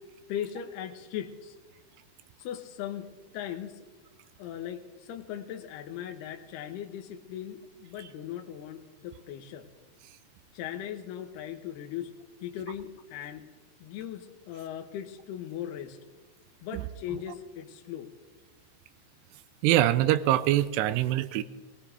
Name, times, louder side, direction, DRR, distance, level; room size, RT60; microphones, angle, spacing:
voice 1, 0.3-1.6 2.4-3.1 3.3-3.8 4.4-9.7 10.5-12.1 12.4-13.5 13.8-16.0 16.6-18.1, left 10 dB, 75° left, 5 dB, 2.7 m, -38 dB
voice 2, 19.6-21.4, right 14 dB, 85° right, 15 dB, 2.6 m, -24 dB
20.5 x 18.0 x 3.5 m, 1.3 s
omnidirectional pair, 5.0 m